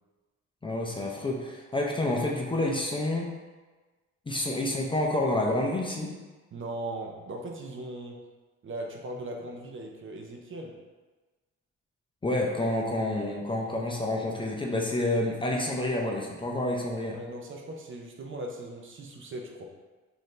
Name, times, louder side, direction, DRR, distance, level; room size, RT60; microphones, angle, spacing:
voice 1, 0.6-3.3 4.3-6.1 12.2-17.2, left 1 dB, 15° left, -1 dB, 0.5 m, -28 dB
voice 2, 6.5-8.2 8.6-10.7 17.1-19.7, right 1 dB, 40° right, 1 dB, 0.6 m, -39 dB
3.9 x 2.7 x 3.1 m, 1.3 s
cardioid pair, 90°, 30 cm